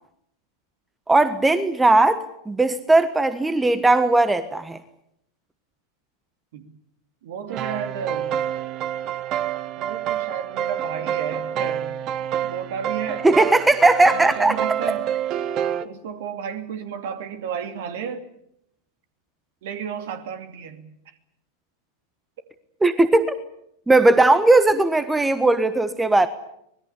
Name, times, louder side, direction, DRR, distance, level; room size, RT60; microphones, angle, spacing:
voice 1, 1.1-4.8 13.2-14.5 22.8-23.3 23.9-26.3, right 2 dB, 10° right, 1.4 m, -18 dB
voice 2, 7.2-8.3 9.8-13.3 14.1-15.1 15.8-18.3 19.6-20.9, right 7 dB, 55° right, 2.7 m, -32 dB
sound 1, 7.5-15.9, right 10 dB, 35° right, 1.1 m, -27 dB
25.5 x 20.5 x 8.5 m
figure-of-eight pair, 90°, 0 cm